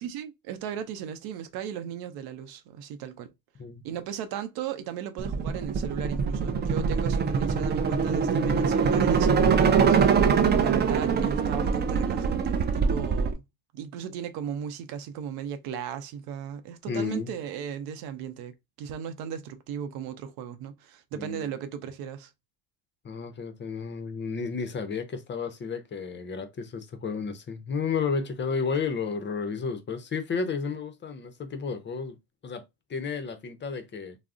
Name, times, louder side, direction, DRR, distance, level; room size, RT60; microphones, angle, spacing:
voice 1, 0.0-3.3 3.8-13.4 13.7-22.3, right 8 dB, 70° right, 0.6 m, -36 dB
sound 1, 5.2-13.3, right 6 dB, 25° right, 0.4 m, -23 dB
voice 2, 16.9-17.3 21.1-21.5 23.0-32.2 32.4-32.6 32.9-34.2, left 5 dB, 30° left, 0.6 m, -32 dB
2.3 x 2.1 x 3.6 m
supercardioid pair, 90°, 39 cm